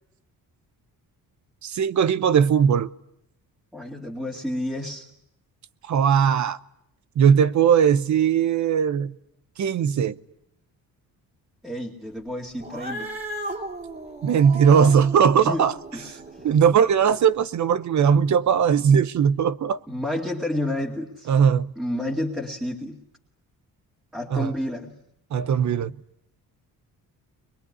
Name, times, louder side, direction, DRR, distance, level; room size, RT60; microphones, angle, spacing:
voice 1, 1.6-2.9 5.9-6.6 7.2-9.1 9.6-10.2 14.2-15.7 16.4-19.8 21.3-21.7 24.3-24.5 25.3-25.9, right 7 dB, 55° right, 0.9 m, -19 dB
voice 2, 3.7-5.1 11.6-13.1 15.4-15.6 15.9-16.5 19.9-21.3 21.8-23.0 24.1-25.0, left 1 dB, ahead, 2.3 m, -30 dB
Cat, 12.6-17.2, right 1 dB, 25° right, 3.0 m, -36 dB
23.0 x 22.5 x 9.6 m
cardioid pair, 130°, 35 cm